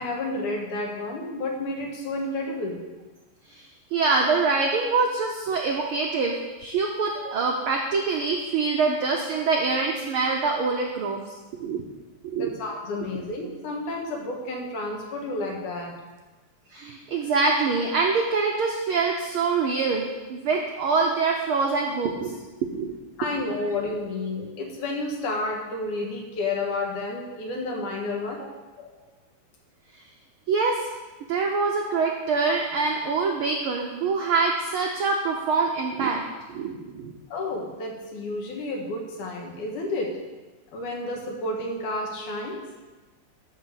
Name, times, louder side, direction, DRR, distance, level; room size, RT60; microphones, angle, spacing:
voice 1, 0.0-2.8 12.3-16.0 23.2-28.4 28.8-29.0 37.3-40.1 40.7-42.6, left 2 dB, 75° left, 0 dB, 3.0 m, -31 dB
voice 2, 3.5-6.3 6.6-11.2 11.6-11.8 12.2-12.5 16.7-22.3 22.7-22.9 23.3-23.4 30.5-30.8 31.3-36.2 36.5-37.1, right 4 dB, 85° right, 1 dB, 1.2 m, -25 dB
12.5 x 5.0 x 6.4 m, 1.2 s
omnidirectional pair, 3.6 m